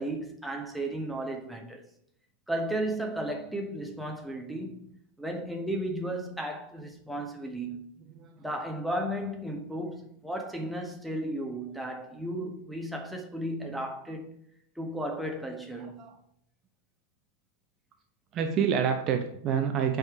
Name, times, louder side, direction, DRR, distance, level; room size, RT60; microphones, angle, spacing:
voice 1, 0.0-1.9 2.5-7.9 8.4-14.4 14.7-16.1, right 1 dB, ahead, 1.4 m, -34 dB
voice 2, 15.8-16.2 18.3-20.0, right 7 dB, 30° right, 0.9 m, -28 dB
8.0 x 5.3 x 4.8 m
figure-of-eight pair, 90°, 0 cm